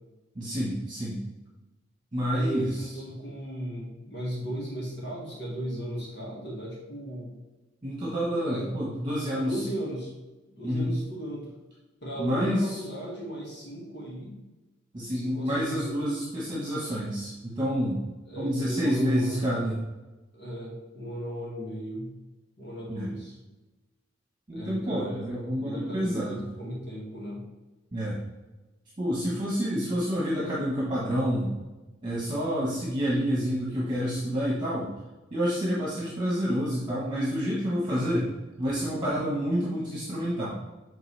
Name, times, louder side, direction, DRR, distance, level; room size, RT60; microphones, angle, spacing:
voice 1, 0.3-1.2 2.1-2.9 7.8-9.6 10.6-10.9 12.2-12.8 14.9-18.0 18.3-19.8 22.9-23.1 24.5-26.4 27.9-28.2 29.0-31.5 32.0-34.9 35.3-38.3 38.6-40.5, equal, 25° right, -6 dB, 1.3 m, -28 dB
voice 2, 2.3-7.3 8.3-8.7 9.3-10.1 10.5-11.5 12.0-14.4 15.1-16.2 18.3-19.5 20.3-22.1 22.6-23.4 24.5-27.4, right 1 dB, 60° left, -5 dB, 2.0 m, -36 dB
7.9 x 4.0 x 3.4 m, 1.1 s
head